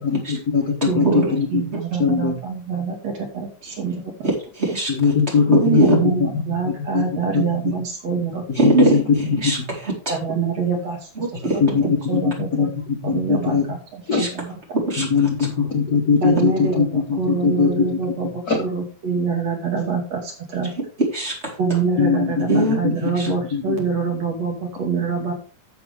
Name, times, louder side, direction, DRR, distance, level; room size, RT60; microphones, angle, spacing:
voice 1, 0.0-1.6 2.0-2.4 4.9-6.0 6.5-7.0 7.3-7.7 8.5-9.0 11.6-13.7 14.1-14.2 15.0-17.8 18.5-18.6 22.0-23.7, left 5 dB, 60° left, 2 dB, 0.9 m, -21 dB
voice 2, 0.9-4.3 5.8-8.4 10.1-11.0 11.5-12.7 13.0-14.5 15.0-15.1 16.2-20.2 20.5-20.7 21.6-25.3, right 5 dB, 60° right, 1 dB, 3.6 m, -25 dB
voice 3, 4.6-4.9 5.3-6.0 8.5-10.2 11.4-11.6 14.2-14.3 14.9-15.0 21.1-21.5 22.5-22.8 23.2-23.3, right 2 dB, 20° right, -2 dB, 4.2 m, -21 dB
12.5 x 7.0 x 3.5 m, 0.36 s
omnidirectional pair, 3.5 m